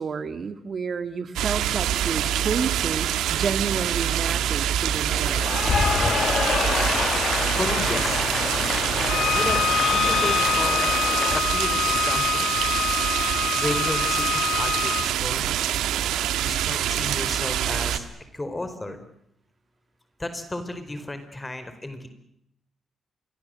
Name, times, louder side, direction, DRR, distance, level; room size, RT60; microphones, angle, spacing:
voice 1, 0.0-5.7, right 5 dB, 55° right, 10 dB, 2.5 m, -30 dB
sound 1, 1.4-18.0, right 11 dB, 90° right, 1.8 m, -25 dB
Cheering / Applause, 5.1-11.4, left 6 dB, 55° left, 1.4 m, -27 dB
voice 2, 7.6-8.3 9.3-12.5 13.6-15.6 16.4-18.0 18.3-19.0 20.2-22.1, left 1 dB, 20° left, 10 dB, 4.6 m, -33 dB
Bowed string instrument, 9.0-15.1, left 9 dB, 80° left, 1.3 m, -26 dB
27.0 x 22.5 x 7.9 m, 0.77 s
cardioid pair, 65°, 0 cm